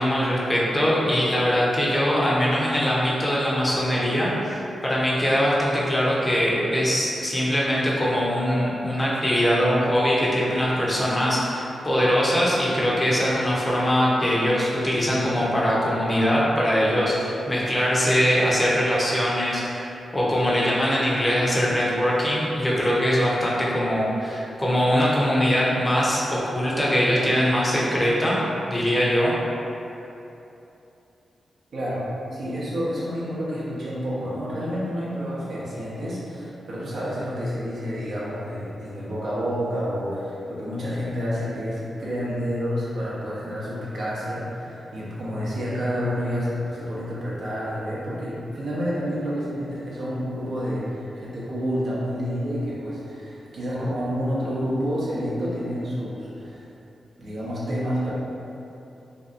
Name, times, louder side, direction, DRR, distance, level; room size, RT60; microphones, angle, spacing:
voice 1, 0.0-28.4 28.7-29.3, equal, 25° left, -6 dB, 0.7 m, -22 dB
voice 2, 31.7-56.6 57.2-58.1, equal, 70° right, -8 dB, 0.7 m, -29 dB
2.6 x 2.3 x 2.5 m, 2.9 s
supercardioid pair, 40°, 0 cm